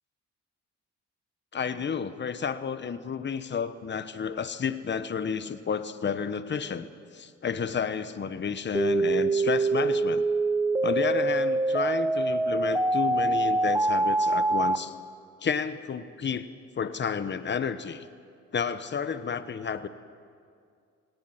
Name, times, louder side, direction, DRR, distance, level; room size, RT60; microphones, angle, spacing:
voice 1, 1.5-6.9 7.1-10.3 10.8-14.9 15.4-16.5 16.8-18.1 18.5-19.9, left 6 dB, 35° left, 12 dB, 1.1 m, -31 dB
sound 1, 8.7-14.8, right 2 dB, 10° right, 0.7 m, -25 dB
18.0 x 18.0 x 9.9 m, 2.3 s
cardioid pair, 90°, 30 cm